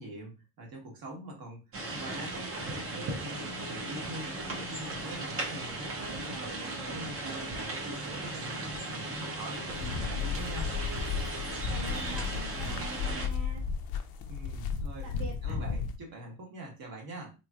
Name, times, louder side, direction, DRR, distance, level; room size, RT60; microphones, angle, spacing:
voice 1, 0.0-1.6 1.9-6.4 6.6-10.7 14.2-17.3, right 1 dB, 45° right, 0 dB, 1.3 m, -44 dB
sound 1, 1.7-13.3, right 2 dB, 30° right, 0.5 m, -37 dB
voice 2, 6.1-7.5 9.8-10.2 11.7-13.7 15.0-15.8, right 3 dB, 65° right, 1 dB, 0.8 m, -45 dB
sound 2, 9.7-16.0, left 6 dB, 50° left, 0.5 m, -34 dB
3.8 x 3.0 x 2.3 m, 0.30 s
cardioid pair, 175°, 49 cm